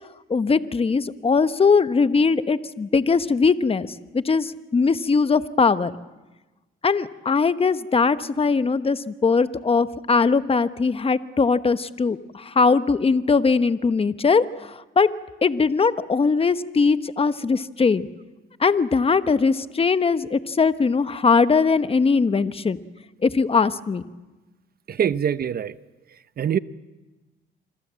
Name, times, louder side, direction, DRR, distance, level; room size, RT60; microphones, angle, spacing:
voice 1, 0.3-6.0 6.8-15.1 15.4-18.1 18.6-22.8 23.2-24.0, left 4 dB, 30° left, 1.1 m, -20 dB
voice 2, 24.9-25.8 26.1-26.6, right 8 dB, 50° right, 0.9 m, -24 dB
26.5 x 25.5 x 7.6 m
cardioid pair, 90°, 20 cm